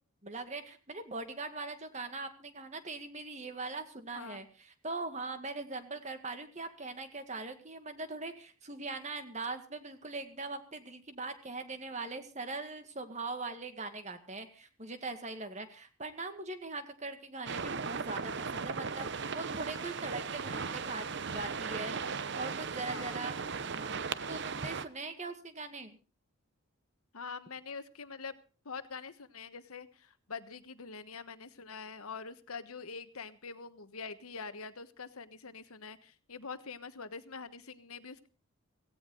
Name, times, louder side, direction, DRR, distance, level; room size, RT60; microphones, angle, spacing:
voice 1, 0.2-21.9 22.4-26.0, right 3 dB, 35° right, 8 dB, 1.9 m, -41 dB
sound 1, 17.5-24.9, right 5 dB, 55° right, 0.8 m, -37 dB
voice 2, 22.9-23.3 27.1-28.3 28.6-38.3, left 5 dB, 85° left, 11 dB, 1.3 m, -45 dB
17.0 x 17.0 x 3.9 m, 0.35 s
head